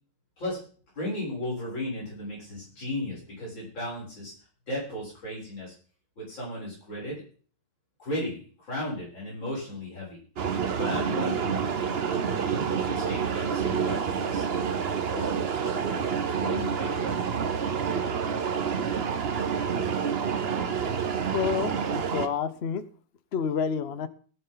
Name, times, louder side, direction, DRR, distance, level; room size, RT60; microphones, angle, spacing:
voice 1, 0.9-4.3 4.7-5.7 6.2-7.2 8.0-8.4 8.7-10.2 10.8-14.5 15.1-17.2, left 1 dB, 85° left, -5 dB, 8.1 m, -35 dB
sound 1, 10.4-22.3, right 6 dB, 45° right, 0.8 m, -28 dB
voice 2, 21.3-22.9 23.3-24.1, left 7 dB, 50° left, 13 dB, 0.8 m, -29 dB
18.0 x 10.0 x 4.0 m, 0.44 s
omnidirectional pair, 2.0 m